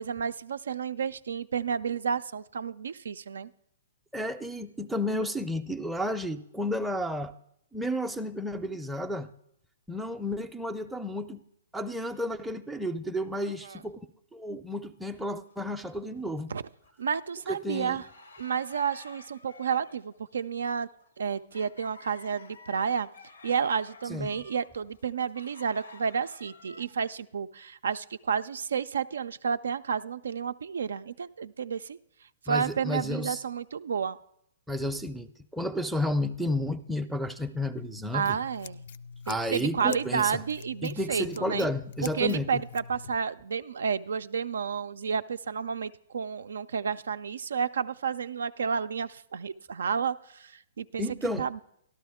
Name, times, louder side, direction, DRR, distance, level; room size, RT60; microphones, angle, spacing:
voice 1, 0.0-3.5 13.4-13.8 16.5-16.6 17.0-18.0 18.4-20.9 21.2-23.1 23.4-32.0 32.5-34.2 38.1-38.8 39.3-41.7 42.1-51.0 51.4-51.6, right 6 dB, 75° right, 0.3 m, -31 dB
voice 2, 4.1-7.3 7.7-9.3 9.9-11.4 11.7-14.1 14.3-16.5 17.5-18.0 24.1-24.3 32.5-33.4 34.7-38.4 39.3-40.4 40.8-42.6 51.0-51.6, left 1 dB, ahead, 0.5 m, -32 dB
sound 1, 15.1-16.5 16.8-26.9, left 3 dB, 85° left, 0.8 m, -52 dB
Scissors, 37.7-43.1, left 6 dB, 60° left, 0.4 m, -45 dB
12.5 x 12.0 x 3.5 m
hypercardioid pair, 130°, 0 cm